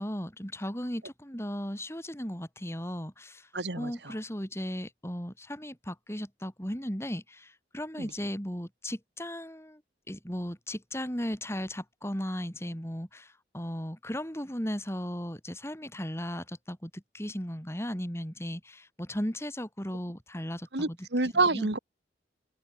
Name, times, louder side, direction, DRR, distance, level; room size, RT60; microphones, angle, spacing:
voice 1, 0.0-3.5 3.8-9.8 10.1-21.1 21.3-21.7, equal, 15° left, 7.6 m, -36 dB
voice 2, 3.5-4.1 8.0-8.1 20.7-21.8, right 3 dB, 70° right, 2.5 m, -28 dB
head